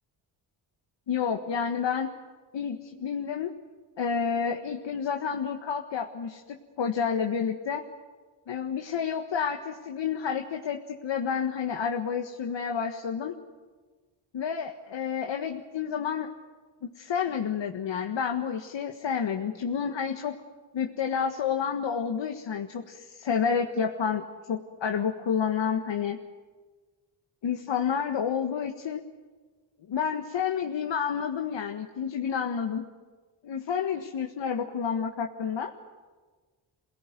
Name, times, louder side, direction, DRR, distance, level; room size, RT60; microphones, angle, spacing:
voice 1, 1.1-2.1 2.5-3.5 4.0-7.9 8.5-13.4 14.3-16.3 16.8-20.4 20.7-26.2 27.4-29.0 29.9-32.8 33.4-35.7, left 7 dB, 65° left, 3 dB, 1.7 m, -30 dB
28.0 x 18.0 x 9.3 m, 1.4 s
supercardioid pair, 55°, 47 cm